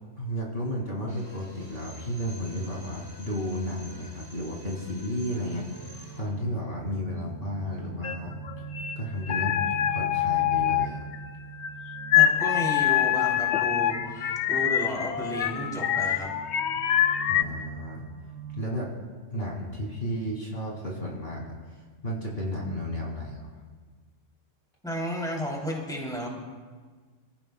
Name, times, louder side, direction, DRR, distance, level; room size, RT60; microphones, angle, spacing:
voice 1, 0.2-5.9 6.2-8.4 9.0-11.1 17.3-18.1 18.5-18.9 19.3-21.8 22.0-23.6, equal, 50° left, -2 dB, 2.7 m, -33 dB
Drill, 1.1-6.4, equal, 20° right, 5.5 m, -49 dB
sound 1, 5.6-18.7, right 8 dB, 80° right, 1.0 m, -43 dB
sound 2, 8.0-9.0 9.2-11.3 11.5-17.4, left 11 dB, 65° left, 0.9 m, -25 dB
voice 2, 12.1-16.3 24.8-26.3, equal, 5° left, -3 dB, 3.2 m, -33 dB
28.5 x 15.0 x 2.3 m, 1.5 s
omnidirectional pair, 1.3 m